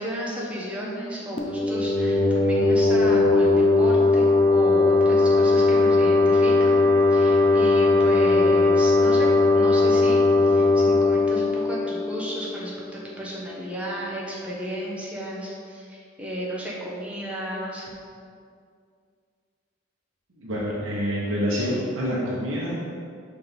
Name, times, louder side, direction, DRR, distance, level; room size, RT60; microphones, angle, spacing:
voice 1, 0.0-6.8 7.1-17.9, equal, 5° right, -6 dB, 1.0 m, -33 dB
sound 1, 1.4-12.8, left 3 dB, 25° left, 0.5 m, -19 dB
voice 2, 20.3-22.9, equal, 75° right, -6 dB, 0.9 m, -27 dB
5.5 x 3.5 x 5.4 m, 2.3 s
head